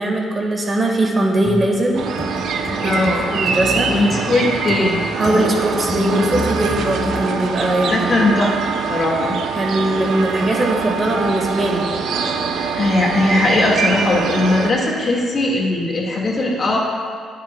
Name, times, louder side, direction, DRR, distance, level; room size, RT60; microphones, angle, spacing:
voice 1, 0.0-2.0 2.8-3.0 3.3-3.9 5.2-8.3 9.5-11.9, right 1 dB, 30° right, 0 dB, 1.9 m, -20 dB
sound 1, 1.4-7.3, left 2 dB, 15° left, 0.9 m, -29 dB
sound 2, 1.9-14.7, right 5 dB, 75° right, 0.8 m, -23 dB
voice 2, 2.8-3.3 3.9-5.0 7.9-8.5 8.9-9.4 12.8-16.8, left 2 dB, 45° left, -1 dB, 2.1 m, -19 dB
20.5 x 7.5 x 2.4 m, 2.2 s
cardioid pair, 90°, 0 cm